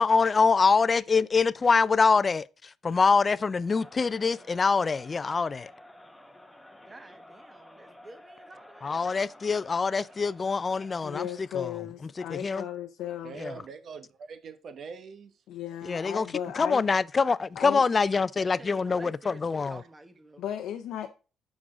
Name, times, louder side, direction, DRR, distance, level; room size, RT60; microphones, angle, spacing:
voice 1, 0.0-2.5 2.8-5.7 8.8-11.3 11.5-11.7 12.3-12.6 13.4-13.5 15.8-16.3 16.6-19.8, left 4 dB, 35° left, 0.3 m, -24 dB
Crowd, 3.5-11.6, left 1 dB, 5° left, 1.0 m, -52 dB
voice 2, 6.8-9.1 18.3-20.4, right 2 dB, 25° right, 1.2 m, -50 dB
voice 3, 11.0-13.4 15.5-16.8 17.6-17.8 20.4-21.1, left 10 dB, 85° left, 0.6 m, -35 dB
voice 4, 13.2-15.4, right 5 dB, 60° right, 0.9 m, -43 dB
6.2 x 6.0 x 4.9 m
cardioid pair, 90°, 0 cm